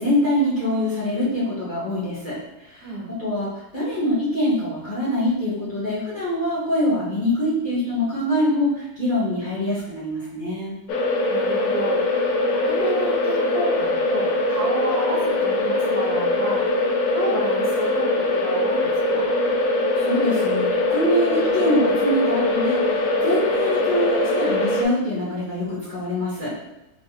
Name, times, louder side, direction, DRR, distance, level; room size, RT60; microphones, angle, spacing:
voice 1, 0.0-10.8 19.9-26.6, left 1 dB, 35° left, -9 dB, 1.0 m, -24 dB
voice 2, 2.8-3.1 11.3-16.6 17.1-19.2, right 2 dB, 65° right, -3 dB, 1.2 m, -31 dB
sound 1, 10.9-24.8, left 2 dB, 70° left, 1.0 m, -22 dB
3.5 x 2.4 x 3.9 m, 1.0 s
omnidirectional pair, 2.0 m